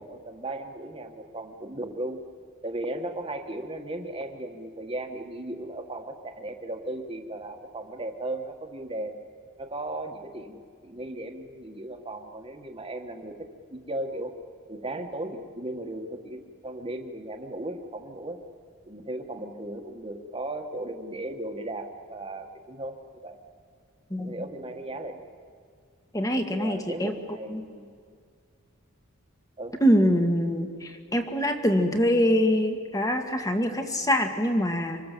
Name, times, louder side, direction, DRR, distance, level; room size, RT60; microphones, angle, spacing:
voice 1, 0.0-2.2 2.6-9.2 9.6-13.3 13.7-14.3 14.7-18.4 18.9-23.0 23.2-23.4 24.1-25.4 26.4-27.9 29.6-29.8, right 1 dB, 25° right, 4 dB, 1.7 m, -36 dB
voice 2, 26.1-27.1 27.5-27.6 29.8-35.0, equal, 15° left, 5 dB, 1.9 m, -24 dB
26.0 x 25.5 x 7.6 m, 2.1 s
head